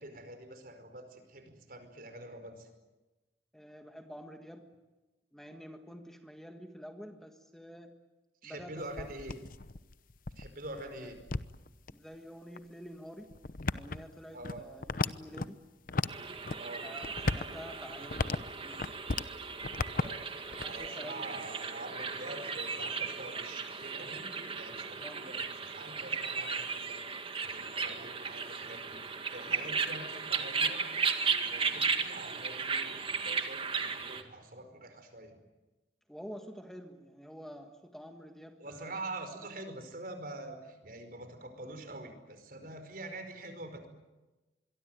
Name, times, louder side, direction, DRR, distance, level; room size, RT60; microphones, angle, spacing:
voice 1, 0.0-2.7 8.4-9.3 10.3-11.2 14.3-14.6 16.5-16.9 19.9-20.2 20.6-30.8 31.2-35.4 38.6-43.9, right 2 dB, 55° right, 8 dB, 5.0 m, -45 dB
voice 2, 3.5-4.6 5.3-7.9 8.4-9.1 10.7-11.1 11.9-13.3 13.7-15.6 16.8-18.8 20.4-21.2 21.7-21.8 25.0-25.2 36.1-39.0, equal, ahead, 5 dB, 1.7 m, -48 dB
sound 1, 8.8-11.9 12.6-12.7 13.3-15.5 15.9-16.6 16.9-19.3 19.6-20.9, left 3 dB, 55° left, 0.9 m, -36 dB
sound 2, 16.1-34.2, right 5 dB, 30° right, 1.9 m, -36 dB
25.5 x 23.0 x 9.3 m, 1.1 s
head